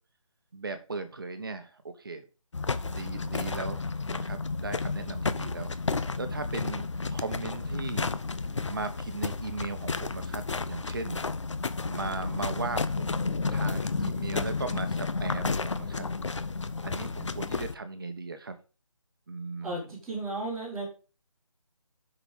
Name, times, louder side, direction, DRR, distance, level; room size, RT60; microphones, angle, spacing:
voice 1, 0.5-2.2 2.9-5.7 6.2-8.2 8.7-11.2 11.9-16.1 16.8-18.5 19.3-19.9, right 3 dB, 40° right, 8 dB, 1.4 m, -37 dB
sound 1, 2.5-17.7, left 4 dB, 60° left, 0.9 m, -32 dB
voice 2, 19.6-20.9, right 2 dB, ahead, -13 dB, 0.7 m, -34 dB
8.0 x 6.2 x 5.3 m, 0.34 s
hypercardioid pair, 175°, 18 cm